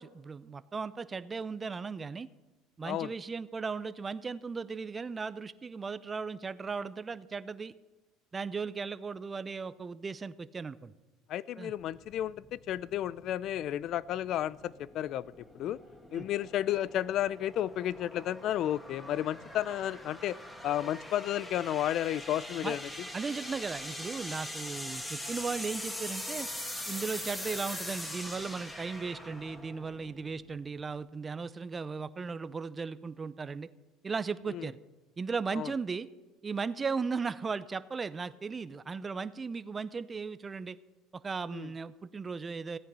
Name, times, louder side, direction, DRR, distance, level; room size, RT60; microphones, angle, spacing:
voice 1, 0.0-2.3 2.8-7.7 8.3-10.9 11.6-11.7 16.1-16.2 22.6-22.8 23.1-26.5 26.9-33.7 34.0-34.8 35.2-36.1 36.4-40.8 41.1-42.8, right 5 dB, 25° right, 15 dB, 0.6 m, -36 dB
voice 2, 11.3-15.8 16.1-20.4 20.6-23.1 34.5-34.7 35.5-35.7 41.5-41.7, left 12 dB, 55° left, 21 dB, 0.4 m, -32 dB
sound 1, 12.0-30.9, left 1 dB, 10° left, 1.8 m, -42 dB
15.0 x 8.9 x 5.6 m, 1.2 s
supercardioid pair, 110°, 0 cm